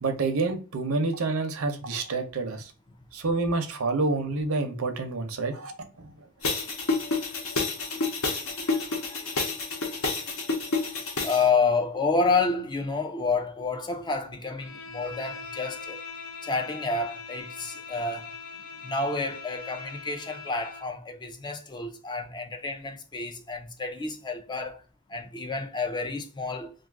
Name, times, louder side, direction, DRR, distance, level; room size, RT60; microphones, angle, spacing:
voice 1, 0.0-2.6 3.1-5.7 6.0-6.1, right 3 dB, 75° right, 0.7 m, -28 dB
sound 1, 6.4-11.4, left 3 dB, 70° left, 0.9 m, -29 dB
voice 2, 8.3-9.3 11.2-16.0 16.4-18.3 18.8-24.8 25.1-26.7, left 4 dB, 20° left, 0.4 m, -29 dB
Bowed string instrument, 14.6-21.0, left 5 dB, 90° left, 0.5 m, -41 dB
2.6 x 2.4 x 3.5 m
head